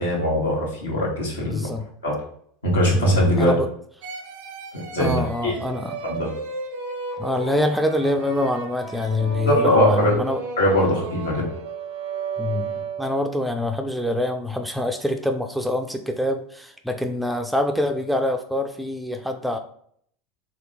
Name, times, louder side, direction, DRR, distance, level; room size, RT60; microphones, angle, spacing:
voice 1, 0.0-1.6 2.0-2.1 2.6-3.5 4.7-5.5 6.0-6.3 9.5-10.2 10.6-11.5, equal, 80° left, -3 dB, 1.2 m, -21 dB
voice 2, 1.5-1.9 2.9-3.7 5.0-6.0 7.2-10.4 12.4-19.6, left 1 dB, ahead, 6 dB, 0.4 m, -25 dB
sound 1, 4.0-13.4, right 5 dB, 60° right, 0.5 m, -33 dB
3.4 x 2.8 x 3.5 m, 0.62 s
figure-of-eight pair, 80°, 0 cm